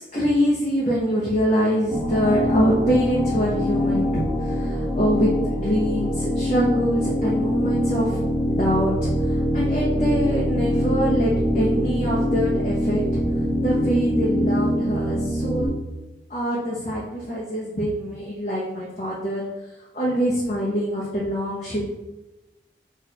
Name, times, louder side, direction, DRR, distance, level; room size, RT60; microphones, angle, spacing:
voice 1, 0.1-8.2 8.5-13.0 13.6-15.7 16.3-19.5 19.9-21.8, equal, 40° left, -7 dB, 1.2 m, -24 dB
sound 1, 1.9-15.7, equal, 5° right, 1.5 m, -24 dB
6.3 x 3.5 x 4.2 m, 1.0 s
head